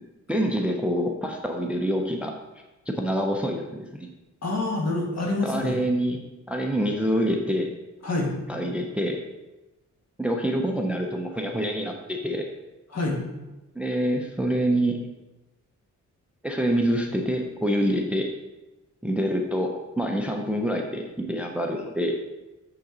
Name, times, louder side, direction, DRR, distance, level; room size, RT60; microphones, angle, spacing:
voice 1, 0.3-2.3 2.9-4.1 5.2-6.2 6.5-7.7 8.5-9.2 10.2-12.5 13.8-15.0 16.4-18.3 19.0-22.2, equal, 5° right, 3 dB, 0.4 m, -26 dB
voice 2, 4.4-5.8 8.0-8.3 12.9-13.2, left 2 dB, 55° left, -1 dB, 1.5 m, -26 dB
6.4 x 5.7 x 3.8 m, 1.1 s
wide cardioid pair, 150°, 30 cm